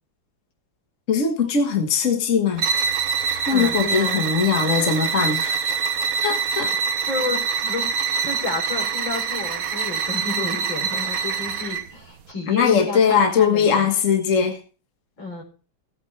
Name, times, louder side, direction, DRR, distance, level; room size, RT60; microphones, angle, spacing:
voice 1, 1.1-2.7 3.5-5.7 6.2-6.8 12.5-14.6, left 6 dB, 45° left, 1.8 m, -20 dB
sound 1, 2.6-11.9, right 6 dB, 55° right, 1.3 m, -25 dB
voice 2, 3.5-4.3 7.0-7.9 8.2-13.9 15.2-15.4, left 4 dB, 90° left, 5.1 m, -31 dB
17.5 x 8.2 x 3.3 m
omnidirectional pair, 2.0 m